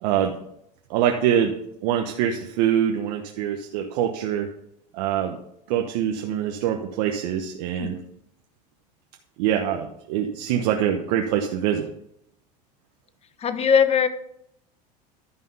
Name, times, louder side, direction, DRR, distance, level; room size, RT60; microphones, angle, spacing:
voice 1, 0.0-0.3 0.9-1.5 1.8-4.5 4.9-5.4 5.7-8.0 9.4-11.9, right 9 dB, 70° right, 3 dB, 1.1 m, -24 dB
voice 2, 13.4-14.1, left 7 dB, 30° left, 11 dB, 1.0 m, -20 dB
12.0 x 5.6 x 5.4 m, 0.75 s
supercardioid pair, 105°, 21 cm